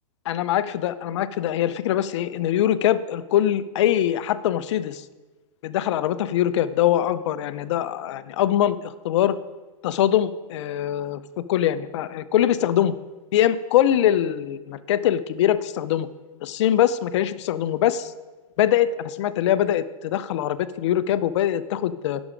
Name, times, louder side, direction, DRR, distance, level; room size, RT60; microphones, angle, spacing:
voice 1, 0.3-5.0 5.6-9.4 9.8-11.2 11.5-12.9 13.3-16.1 16.4-18.1 18.6-22.2, left 11 dB, 55° left, 15 dB, 0.5 m, -23 dB
11.0 x 6.2 x 5.0 m, 1.2 s
hypercardioid pair, 145°, 18 cm